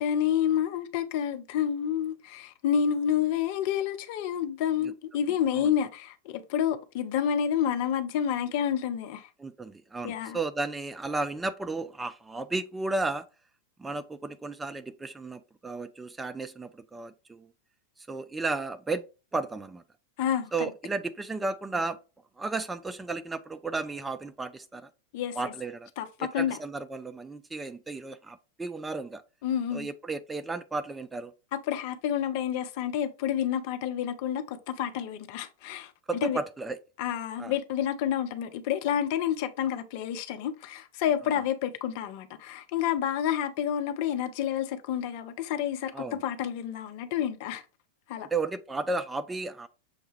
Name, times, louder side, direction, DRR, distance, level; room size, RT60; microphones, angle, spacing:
voice 1, 0.0-9.3 10.0-10.4 20.2-20.7 25.1-25.5 26.0-26.6 29.4-29.9 31.5-35.9 36.2-36.4 37.0-47.6 48.1-48.3, left 9 dB, 45° left, 0.5 m, -29 dB
voice 2, 9.4-13.3 13.8-17.5 18.0-19.0 19.3-19.8 20.5-22.0 22.4-24.9 25.4-25.9 26.2-29.2 29.7-31.3 36.1-36.8 37.4-37.5 45.9-46.2 48.3-49.7, right 3 dB, 10° right, 0.3 m, -33 dB
6.4 x 2.3 x 3.1 m
figure-of-eight pair, 90°, 0 cm